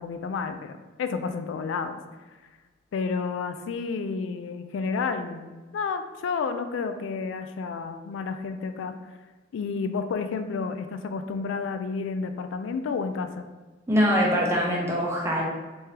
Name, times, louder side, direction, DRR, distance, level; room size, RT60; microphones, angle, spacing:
voice 1, 0.0-2.0 2.9-8.9 9.5-13.5, left 5 dB, 85° left, 8 dB, 0.3 m, -31 dB
voice 2, 13.9-15.4, equal, 15° right, -3 dB, 0.6 m, -23 dB
3.5 x 3.2 x 2.8 m, 1.2 s
head